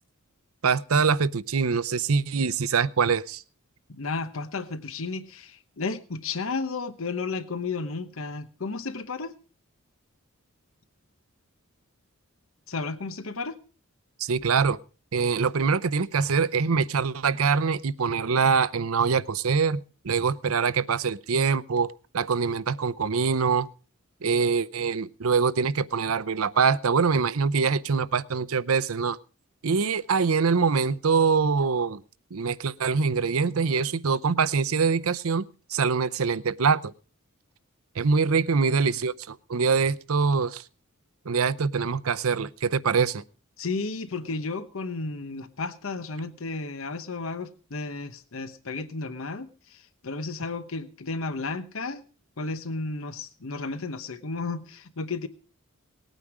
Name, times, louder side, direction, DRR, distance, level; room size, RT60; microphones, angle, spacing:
voice 1, 0.6-3.4 14.2-14.8 15.1-23.7 24.2-29.2 29.6-32.0 32.3-35.4 35.7-36.9 38.0-40.6 41.3-43.2, right 5 dB, 85° right, 18 dB, 0.6 m, -24 dB
voice 2, 3.9-9.3 12.7-13.6 38.6-38.7 43.6-52.0 52.4-55.3, left 3 dB, 70° left, 12 dB, 1.0 m, -33 dB
19.0 x 9.1 x 4.8 m, 0.36 s
head